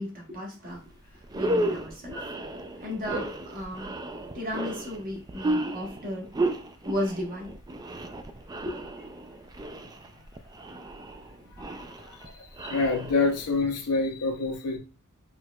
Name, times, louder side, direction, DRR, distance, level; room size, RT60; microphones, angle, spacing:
voice 1, 0.0-2.2 2.5-4.0 4.3-6.4 6.8-7.5 8.5-8.9, left 1 dB, 40° right, 1.2 m, -35 dB
sound 1, 0.8-0.9 1.2-13.6, right 1 dB, 20° right, 0.3 m, -33 dB
voice 2, 11.6-14.8, left 3 dB, 85° left, 0.7 m, -28 dB
4.6 x 3.0 x 2.3 m
head